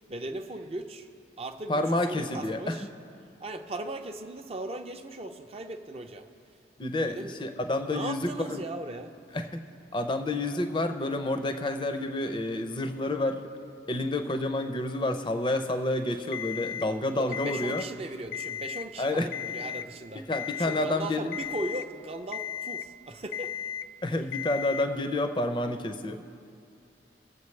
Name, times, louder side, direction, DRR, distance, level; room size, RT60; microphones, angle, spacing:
voice 1, 0.1-1.1 1.4-2.9 3.4-6.3 7.0-7.4 7.9-9.1 17.2-20.2 20.5-23.5, right 2 dB, 35° right, 6 dB, 0.5 m, -38 dB
voice 2, 1.7-2.7 6.8-8.6 9.3-9.6 9.9-13.4 13.9-17.8 19.0-19.3 20.3-21.4 24.0-26.2, left 2 dB, 25° left, 7 dB, 0.5 m, -29 dB
Alarm, 16.3-16.9 17.3-17.9 18.3-18.9 19.3-19.9 20.3-20.9 21.3-21.9 22.3-22.9 23.3-23.9 24.3-24.9, left 10 dB, 85° left, 0.3 m, -35 dB
21.5 x 7.6 x 3.2 m, 2.5 s
head